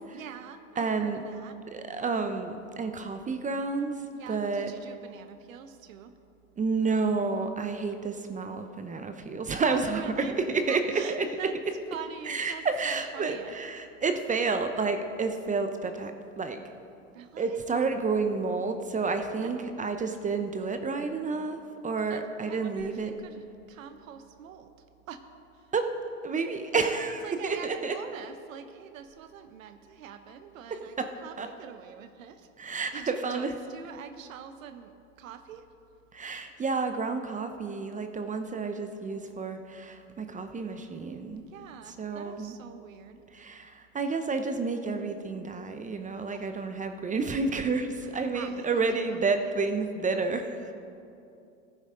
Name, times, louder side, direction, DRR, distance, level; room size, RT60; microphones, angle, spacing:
voice 1, 0.1-1.6 4.1-6.1 9.7-10.4 10.7-11.6 11.9-13.5 17.1-17.6 19.4-19.8 22.1-24.7 25.1-25.2 25.5-25.7 27.2-32.5 32.9-35.7 41.4-43.2 46.1-46.7 48.0-49.9, right 8 dB, 90° right, 9 dB, 0.7 m, -45 dB
voice 2, 0.8-1.2 1.7-4.7 6.6-10.0 10.5-10.8 11.1-11.3 12.3-16.1 16.4-16.6 17.4-23.1 25.7-25.9 26.2-27.9 31.0-31.1 31.4-31.5 32.6-33.5 36.1-41.4 42.0-42.6 43.3-50.7, right 4 dB, 20° right, 7 dB, 0.7 m, -30 dB
15.0 x 10.0 x 3.8 m, 2.6 s
hypercardioid pair, 95°, 39 cm